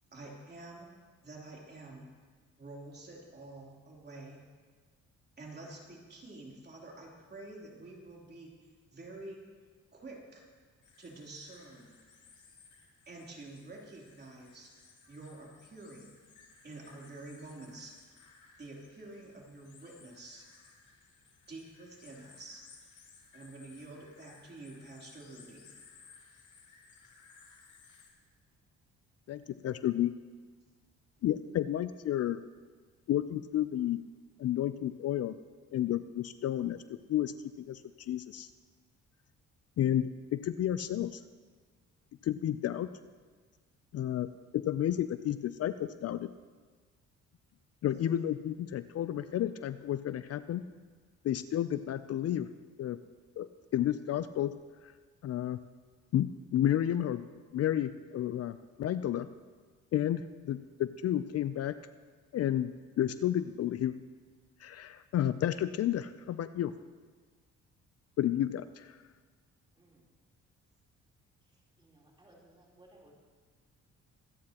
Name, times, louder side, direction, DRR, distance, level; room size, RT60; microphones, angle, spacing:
voice 1, 0.1-0.9 1.2-2.1 2.6-4.4 5.4-9.4 9.9-10.4 11.0-12.0 13.0-14.7 15.1-16.1 16.6-17.9 18.6-20.4 21.5-22.6 23.3-25.7, right 2 dB, 35° right, -3 dB, 3.2 m, -48 dB
sound 1, 10.8-28.1, left 5 dB, 75° left, 2.7 m, -60 dB
voice 2, 29.3-30.1 31.2-32.4 33.1-34.0 34.4-35.3 35.7-37.3 37.6-38.5 39.8-41.2 42.2-42.9 43.9-44.3 44.5-46.3 47.8-50.7 51.2-52.5 52.8-53.0 53.4-54.5 54.8-54.9 55.2-55.6 56.1-57.3 57.5-59.3 59.9-61.8 62.3-63.9 64.6-66.7 68.2-69.0, left 11 dB, 55° left, 13 dB, 0.5 m, -31 dB
voice 3, 71.4-73.1, right 1 dB, 15° right, -4 dB, 3.5 m, -61 dB
24.5 x 9.6 x 2.9 m, 1.5 s
cardioid pair, 90°, 30 cm